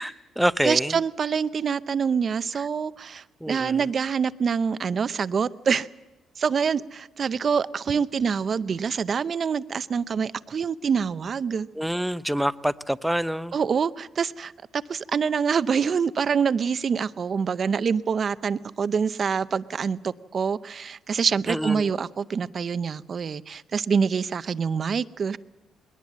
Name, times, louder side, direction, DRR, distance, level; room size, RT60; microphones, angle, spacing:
voice 1, 0.0-1.0 2.5-2.7 3.4-3.9 11.7-13.6 21.5-21.9, equal, 5° right, 0.6 m, -26 dB
voice 2, 0.6-5.9 6.4-11.7 13.5-25.4, right 6 dB, 45° right, 0.6 m, -26 dB
21.0 x 18.5 x 7.4 m
cardioid pair, 90°, 0 cm